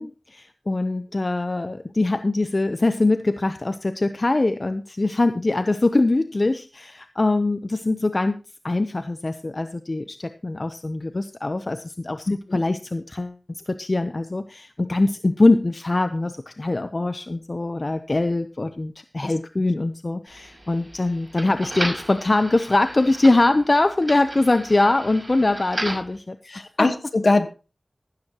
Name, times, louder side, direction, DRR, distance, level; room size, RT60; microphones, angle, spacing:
voice 1, 0.0-8.4 8.6-26.9, left 2 dB, 50° left, 10 dB, 0.7 m, -23 dB
sound 1, 20.3-26.2, right 1 dB, 35° right, 6.0 m, -35 dB
voice 2, 26.5-27.5, left 2 dB, 65° left, 9 dB, 1.3 m, -22 dB
14.5 x 12.5 x 2.9 m, 0.32 s
wide cardioid pair, 55°, 0 cm